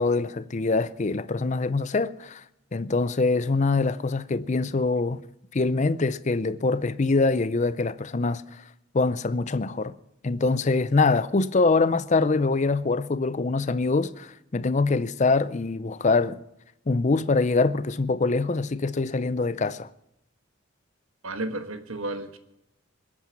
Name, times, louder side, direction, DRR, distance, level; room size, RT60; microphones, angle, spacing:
voice 1, 0.0-2.4 2.7-5.2 5.5-8.6 8.9-9.9 10.2-16.4 16.9-19.9, left 3 dB, 35° left, 0.5 m, -24 dB
voice 2, 21.2-22.4, right 2 dB, 70° right, 1.4 m, -32 dB
21.0 x 8.8 x 6.0 m
head